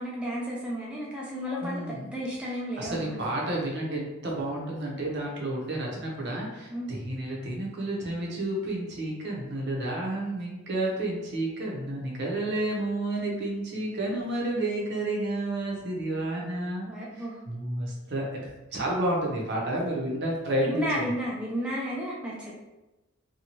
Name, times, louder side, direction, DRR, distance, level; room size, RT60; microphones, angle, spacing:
voice 1, 0.0-3.2 6.7-6.9 16.9-17.4 19.7-19.9 20.6-22.5, equal, 5° right, -5 dB, 0.4 m, -33 dB
voice 2, 1.6-2.0 2.8-16.9 17.5-20.9, right 1 dB, 55° right, -2 dB, 0.7 m, -30 dB
2.8 x 2.2 x 2.9 m, 1.1 s
head